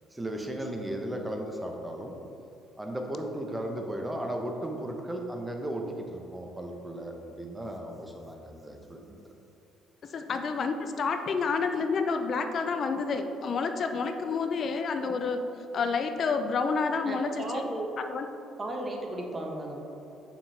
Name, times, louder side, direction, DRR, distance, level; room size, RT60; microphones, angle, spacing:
voice 1, 0.1-2.2 2.8-9.2, right 1 dB, 15° right, 2 dB, 1.1 m, -36 dB
voice 2, 10.1-15.4 15.7-17.4 18.1-18.3, left 4 dB, 50° left, 7 dB, 0.6 m, -29 dB
voice 3, 17.0-17.9 18.6-19.8, right 1 dB, 30° right, 0 dB, 1.3 m, -35 dB
7.0 x 5.7 x 3.4 m, 3.0 s
hypercardioid pair, 55°, 0 cm